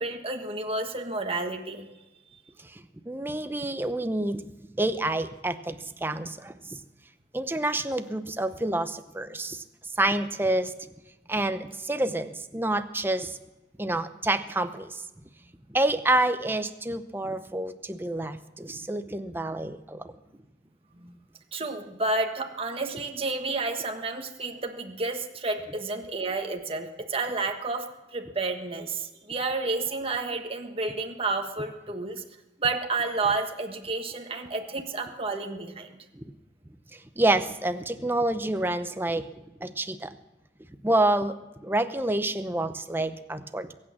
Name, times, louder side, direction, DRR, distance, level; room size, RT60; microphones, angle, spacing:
voice 1, 0.0-1.9 20.9-21.1 21.5-32.2 32.6-36.0, right 3 dB, 30° right, 4 dB, 1.4 m, -30 dB
voice 2, 2.6-4.4 4.8-6.8 7.3-9.6 10.0-10.7 11.3-13.4 13.8-15.0 15.7-20.1 36.1-36.3 36.9-39.2 39.6-40.1 40.8-41.4 41.6-43.7, right 1 dB, 10° right, 10 dB, 0.7 m, -28 dB
22.0 x 8.8 x 7.3 m, 1.1 s
head